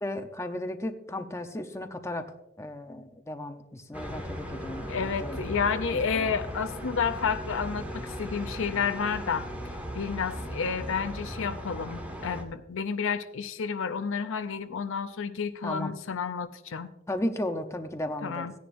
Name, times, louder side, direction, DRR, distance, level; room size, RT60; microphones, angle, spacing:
voice 1, 0.0-2.3 2.6-5.0 5.2-5.4 6.1-6.3 10.4-10.6 15.6-15.9 17.1-18.5, left 1 dB, 15° left, 6 dB, 0.7 m, -34 dB
sound 1, 3.9-12.4, equal, 5° right, 1.8 m, -37 dB
voice 2, 4.9-9.5 9.9-16.9 18.2-18.5, left 6 dB, 65° left, 10 dB, 0.6 m, -30 dB
17.5 x 10.0 x 2.6 m, 0.93 s
head